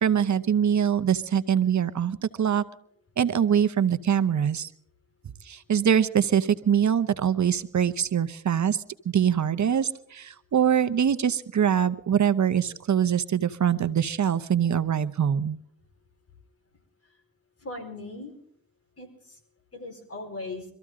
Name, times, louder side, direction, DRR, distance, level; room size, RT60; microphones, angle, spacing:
voice 1, 0.0-2.6 3.2-4.7 5.4-15.6, right 8 dB, 55° right, 12 dB, 0.9 m, -23 dB
voice 2, 17.6-18.3 19.0-19.4 19.7-20.6, left 2 dB, 45° left, 3 dB, 4.5 m, -38 dB
24.5 x 14.0 x 3.7 m, 0.70 s
cardioid pair, 80°, 34 cm